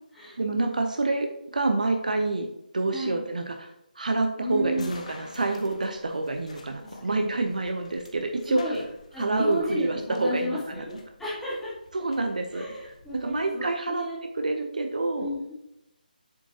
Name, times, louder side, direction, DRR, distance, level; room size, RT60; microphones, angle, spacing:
voice 1, 0.4-2.5 2.7-3.7 4.0-8.8 9.2-10.8 11.9-12.7 13.1-14.1 14.3-15.3, right 2 dB, 55° right, 5 dB, 0.7 m, -27 dB
voice 2, 2.9-3.2 4.4-4.9 6.8-7.3 8.5-8.8 9.1-11.7 12.5-14.2 15.2-15.5, equal, 5° left, -10 dB, 2.1 m, -33 dB
sound 1, 4.7-13.4, left 2 dB, 45° left, 1.0 m, -50 dB
7.6 x 6.1 x 2.9 m, 0.85 s
figure-of-eight pair, 150°, 5 cm